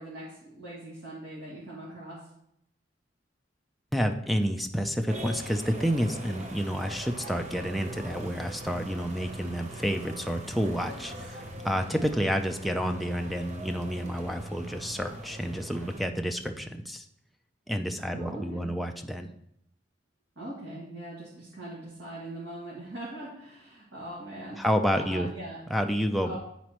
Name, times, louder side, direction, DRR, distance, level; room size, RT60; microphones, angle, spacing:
voice 1, 0.0-2.2 18.1-18.7 20.4-24.6 24.9-25.6 26.2-26.4, right 1 dB, 75° right, -7 dB, 2.0 m, -41 dB
voice 2, 3.9-17.1 17.7-19.3 24.6-25.3 25.7-26.4, equal, ahead, 4 dB, 0.4 m, -29 dB
sound 1, 5.1-16.1, right 1 dB, 40° right, 0.8 m, -41 dB
11.0 x 4.1 x 3.0 m, 0.75 s
head